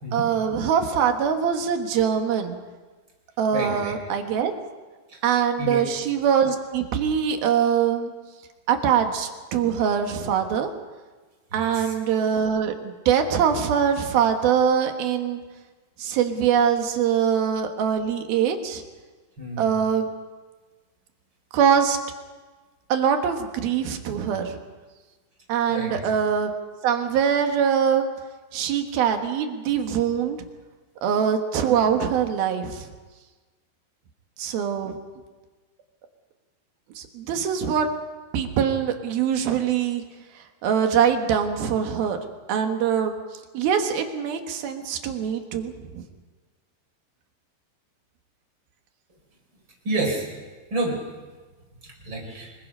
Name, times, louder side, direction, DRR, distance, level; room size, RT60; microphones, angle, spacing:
voice 1, 0.1-2.6 3.4-4.5 5.2-8.1 8.7-10.7 11.5-15.4 16.0-18.8 19.6-20.1 21.5-22.0 22.9-24.6 25.5-26.5 26.8-28.1 28.5-30.4 31.0-32.9 34.4-35.0 37.0-37.9 38.3-40.0 40.4-42.2 42.5-43.1 43.5-46.0, right 8 dB, 70° right, 5 dB, 3.1 m, -23 dB
voice 2, 3.5-4.0 5.1-5.2 5.6-5.8 11.5-11.9 19.4-19.7 25.7-26.0 49.8-50.3 50.7-51.0 51.8-52.5, right 2 dB, 30° right, 1 dB, 4.8 m, -29 dB
24.5 x 22.0 x 5.5 m, 1.3 s
omnidirectional pair, 4.7 m